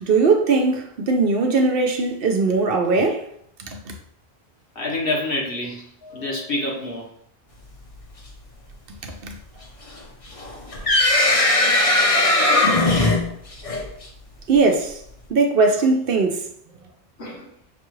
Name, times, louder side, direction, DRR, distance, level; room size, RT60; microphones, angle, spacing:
voice 1, 0.0-3.3 3.6-3.9 9.0-9.4 14.5-15.0 15.3-16.4, right 4 dB, 65° right, 0.8 m, -20 dB
voice 2, 4.7-7.1 17.2-17.5, left 2 dB, 65° left, 1.3 m, -27 dB
sound 1, 10.4-14.0, left 2 dB, 40° left, 0.7 m, -18 dB
5.8 x 2.4 x 3.1 m
omnidirectional pair, 1.1 m